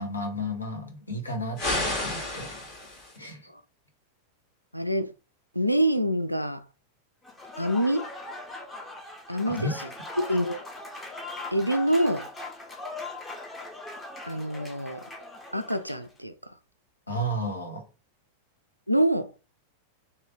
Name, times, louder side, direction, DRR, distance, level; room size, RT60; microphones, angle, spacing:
voice 1, 0.0-2.7 3.2-3.4 9.5-9.7 17.1-17.8, equal, 80° left, 1.0 m, -33 dB
sound 1, 1.6-3.2, left 2 dB, 35° left, 1.7 m, -31 dB
voice 2, 4.7-5.1 5.6-6.6 7.6-8.0 9.3-9.7 10.2-10.6 11.5-12.2 14.2-15.0 15.5-16.3 18.9-19.3, equal, 90° right, 0.3 m, -25 dB
Applause / Crowd, 7.2-16.1, left 2 dB, 10° left, 0.7 m, -40 dB
3.3 x 2.1 x 3.7 m
figure-of-eight pair, 90°, 0 cm